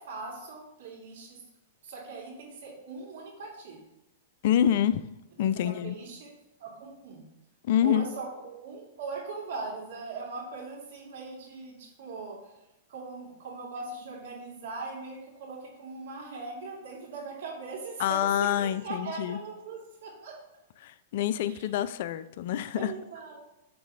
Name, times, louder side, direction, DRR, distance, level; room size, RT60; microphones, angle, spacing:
voice 1, 0.0-1.4 1.8-3.8 5.6-6.3 6.6-7.2 7.8-12.6 12.9-20.4 21.4-21.6 22.7-23.5, right 4 dB, 65° right, -2 dB, 2.4 m, -40 dB
voice 2, 4.4-5.0 5.4-6.0 7.6-8.0 18.0-19.4 20.8-22.9, left 10 dB, 60° left, 14 dB, 0.3 m, -26 dB
6.0 x 4.1 x 4.9 m, 0.91 s
hypercardioid pair, 115°, 0 cm